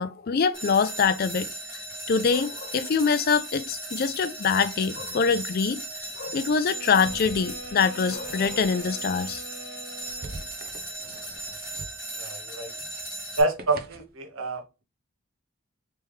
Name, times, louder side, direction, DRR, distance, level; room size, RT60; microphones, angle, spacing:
voice 1, 0.0-1.5 2.1-5.8 6.2-9.4, left 5 dB, 45° left, 0.3 m, -24 dB
sound 1, 0.5-13.4, right 1 dB, 10° right, 1.9 m, -37 dB
sound 2, 4.7-14.2, right 2 dB, 45° right, 0.5 m, -47 dB
sound 3, 6.7-10.6, right 1 dB, 20° left, 0.9 m, -43 dB
voice 2, 12.1-12.7 13.4-14.8, right 2 dB, 75° right, 1.0 m, -27 dB
3.5 x 3.1 x 3.1 m
head